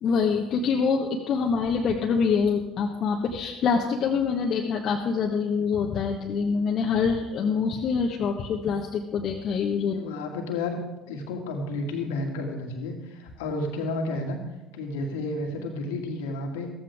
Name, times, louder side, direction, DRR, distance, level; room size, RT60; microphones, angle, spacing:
voice 1, 0.0-10.0, left 5 dB, 50° left, 0 dB, 1.3 m, -25 dB
voice 2, 9.8-10.8 11.1-14.4 14.7-16.7, left 2 dB, 70° left, 3 dB, 2.1 m, -31 dB
14.5 x 14.5 x 3.6 m, 1.0 s
figure-of-eight pair, 60°, 0 cm